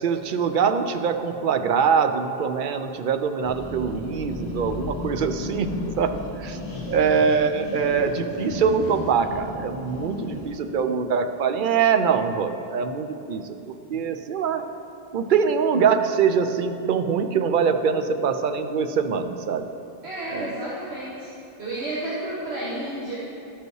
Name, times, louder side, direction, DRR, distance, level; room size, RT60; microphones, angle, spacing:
voice 1, 0.0-6.6 6.9-14.6 15.1-19.7 20.3-20.5, right 6 dB, 60° right, 8 dB, 0.7 m, -23 dB
sound 1, 3.4-10.6, left 2 dB, 35° left, 1.8 m, -34 dB
voice 2, 20.0-21.3 21.6-23.2, right 1 dB, 85° right, -7 dB, 1.5 m, -31 dB
13.0 x 5.3 x 4.7 m, 2.8 s
omnidirectional pair, 1.1 m